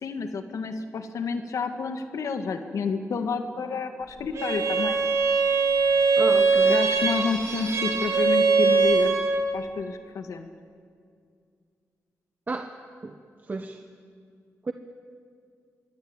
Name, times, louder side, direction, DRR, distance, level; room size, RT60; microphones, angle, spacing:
voice 1, 0.0-5.0 6.7-9.2 9.5-10.5, left 5 dB, 80° left, 6 dB, 1.7 m, -30 dB
Bowed string instrument, 4.3-9.5, right 4 dB, 65° right, 3.4 m, -22 dB
voice 2, 6.2-6.8 12.5-12.8 13.0-13.8 14.6-14.7, right 3 dB, 30° right, 6 dB, 1.1 m, -32 dB
25.5 x 23.0 x 8.8 m, 2.2 s
wide cardioid pair, 130°, 6 cm